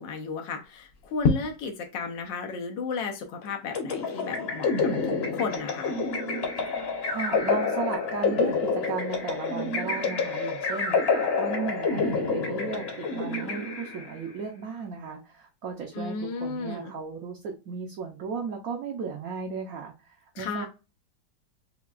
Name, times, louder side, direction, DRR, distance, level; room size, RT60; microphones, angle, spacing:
voice 1, 0.0-4.9 5.3-6.0 15.9-16.9 20.3-20.7, left 5 dB, 85° left, 3 dB, 1.4 m, -34 dB
sound 1, 0.6-17.8, left 4 dB, 70° left, 0.5 m, -40 dB
sound 2, 3.7-14.2, left 4 dB, 45° left, 0.9 m, -28 dB
voice 2, 7.1-20.7, right 5 dB, 65° right, 2 dB, 1.0 m, -35 dB
5.7 x 2.2 x 2.4 m, 0.30 s
omnidirectional pair, 1.9 m